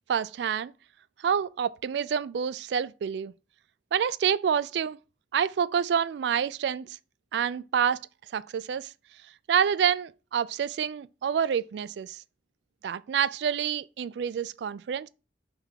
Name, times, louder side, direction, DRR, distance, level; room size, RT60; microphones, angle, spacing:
voice 1, 0.1-0.7 1.2-3.3 3.9-5.0 5.3-7.0 7.3-8.0 8.3-8.9 9.5-12.2 12.8-15.1, right 8 dB, 70° right, 0.3 m, -27 dB
5.6 x 3.4 x 5.7 m
head